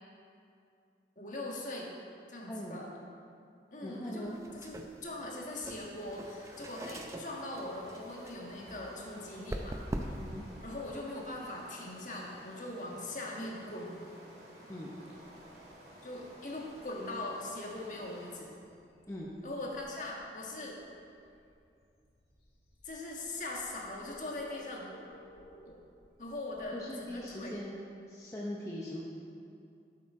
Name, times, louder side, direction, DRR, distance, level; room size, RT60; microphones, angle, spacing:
voice 1, 1.1-1.9 2.3-2.9 3.7-10.2 10.6-13.9 16.0-18.5 19.4-20.8 22.8-24.9 25.6-25.8 26.2-27.6, left 2 dB, 45° left, -2 dB, 1.6 m, -41 dB
voice 2, 2.5-2.8 3.8-4.3 10.2-10.4 14.7-14.9 19.1-19.3 26.7-27.8 28.1-29.0, left 1 dB, 15° left, -4 dB, 0.8 m, -40 dB
sound 1, 4.3-10.4, right 1 dB, 15° right, 0.5 m, -43 dB
sound 2, 5.9-18.3, right 1 dB, 65° right, 2.3 m, -54 dB
sound 3, 15.1-27.5, equal, 65° left, 1.9 m, -61 dB
12.0 x 8.5 x 3.7 m, 2.5 s
head